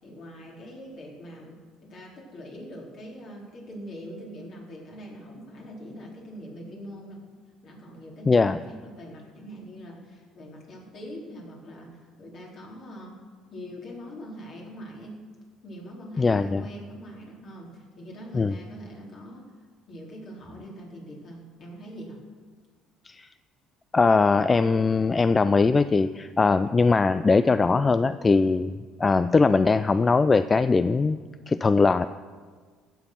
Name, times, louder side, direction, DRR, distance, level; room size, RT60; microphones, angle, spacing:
voice 1, 0.0-7.2 7.6-13.2 13.5-15.2 15.6-19.5 19.9-22.2, equal, 55° left, -2 dB, 3.8 m, -42 dB
voice 2, 8.3-8.6 16.2-16.6 18.3-18.6 23.1-23.3 23.9-31.2 31.5-32.1, left 4 dB, 30° left, 13 dB, 0.4 m, -21 dB
15.5 x 6.9 x 5.8 m, 1.5 s
hypercardioid pair, 70°, 0 cm